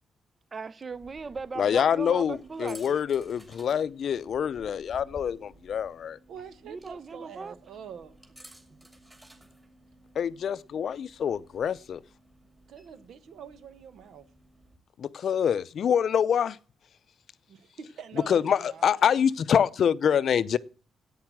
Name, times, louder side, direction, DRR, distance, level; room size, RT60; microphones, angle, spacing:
voice 1, 0.5-2.8 6.6-7.6 8.7-8.9, right 4 dB, 30° right, 0.5 m, -38 dB
sound 1, 0.9-14.8, right 1 dB, 15° right, 2.3 m, -55 dB
voice 2, 1.6-6.2 10.2-12.0 15.2-16.6 18.3-20.6, left 8 dB, 60° left, 0.5 m, -25 dB
voice 3, 6.3-8.2 12.7-14.3 17.5-18.9, right 7 dB, 80° right, 1.3 m, -45 dB
10.5 x 8.8 x 8.9 m
cardioid pair, 130°, 0 cm